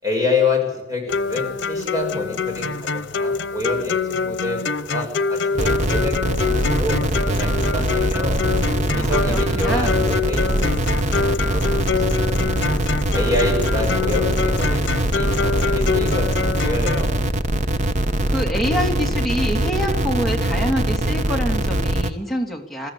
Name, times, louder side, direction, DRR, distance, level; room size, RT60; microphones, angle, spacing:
voice 1, 0.0-8.4 8.9-12.8 13.1-14.8 15.1-17.1, left 2 dB, 20° right, 1 dB, 6.3 m, -27 dB
sound 1, 1.1-17.1, left 5 dB, 90° left, 0.8 m, -25 dB
sound 2, 5.6-22.1, right 1 dB, 40° right, 1.0 m, -22 dB
voice 2, 9.0-10.1 18.3-22.9, equal, ahead, -1 dB, 2.8 m, -26 dB
21.5 x 14.5 x 8.6 m, 0.95 s
head